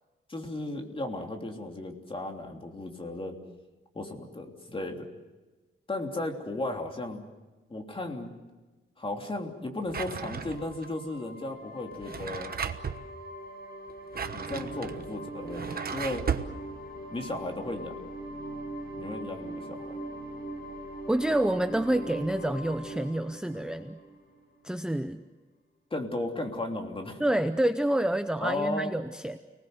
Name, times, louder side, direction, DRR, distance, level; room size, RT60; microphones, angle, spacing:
voice 1, 0.3-3.4 3.9-5.1 5.9-7.2 7.7-8.3 9.0-12.5 14.3-16.3 17.1-17.9 19.0-20.0 25.9-27.2 28.4-28.9, left 2 dB, 25° left, 3 dB, 3.1 m, -35 dB
Drawer open or close, 9.9-10.9 11.9-13.0 13.9-16.5, right 6 dB, 45° right, 1.2 m, -35 dB
sound 1, 10.2-24.7, right 1 dB, 45° left, 7.3 m, -41 dB
voice 2, 21.1-24.0 24.6-25.2 27.2-29.4, right 1 dB, 5° right, 8 dB, 0.7 m, -28 dB
30.0 x 20.0 x 7.9 m, 1.2 s
wide cardioid pair, 145°, 21 cm